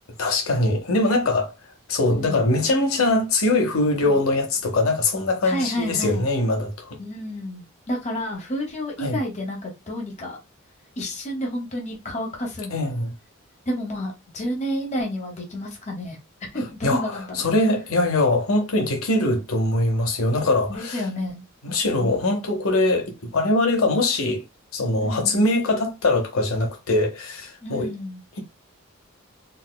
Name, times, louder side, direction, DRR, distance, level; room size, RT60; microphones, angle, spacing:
voice 1, 0.2-1.5 1.9-7.0 9.0-9.2 12.7-13.1 16.8-21.0 21.6-24.4 24.7-27.9, left 2 dB, 85° left, 0.9 m, -22 dB
voice 2, 2.1-2.4 4.0-4.2 5.4-6.2 7.0-10.4 11.0-12.9 13.7-16.2 16.5-17.4 20.7-22.2 25.0-25.5 27.6-28.2, equal, 35° left, 0.9 m, -30 dB
4.0 x 2.1 x 2.2 m
head